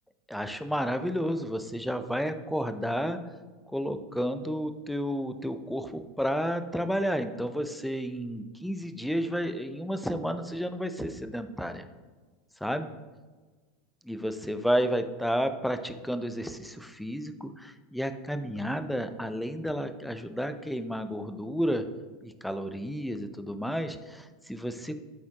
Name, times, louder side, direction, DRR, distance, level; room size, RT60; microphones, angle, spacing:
voice 1, 0.3-3.2 3.7-11.8 12.6-12.9 14.0-21.8 22.2-24.9, equal, ahead, 9 dB, 0.6 m, -31 dB
12.0 x 4.1 x 3.0 m, 1.3 s
hypercardioid pair, 85°, 0 cm